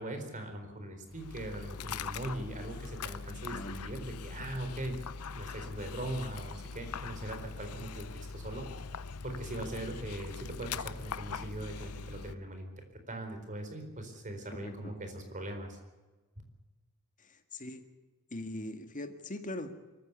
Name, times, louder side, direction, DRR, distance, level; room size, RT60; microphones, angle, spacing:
voice 1, 0.0-5.0 5.3-8.7 9.2-15.8, right 1 dB, 35° right, 6 dB, 4.3 m, -40 dB
Dog, 1.1-12.4, left 5 dB, 85° left, 0.7 m, -42 dB
voice 2, 3.5-3.8 14.6-14.9 17.2-17.8 18.3-19.7, left 1 dB, 35° left, 7 dB, 2.0 m, -41 dB
24.0 x 14.5 x 8.3 m, 1.2 s
head